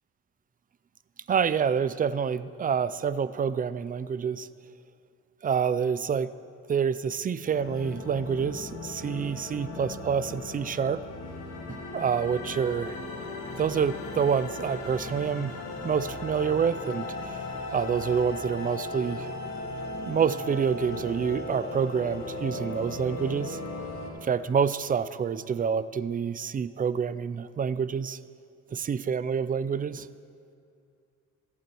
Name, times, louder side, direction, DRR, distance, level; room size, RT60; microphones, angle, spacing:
voice 1, 1.3-4.5 5.4-6.3 6.7-11.0 11.7-13.0 13.6-17.1 17.7-19.3 20.1-23.6 24.2-28.2 28.7-30.1, right 7 dB, 30° right, 15 dB, 0.4 m, -27 dB
sound 1, 7.5-24.1, left 2 dB, 60° left, 1.7 m, -37 dB
22.5 x 8.3 x 3.0 m, 2.5 s
cardioid pair, 90°, 30 cm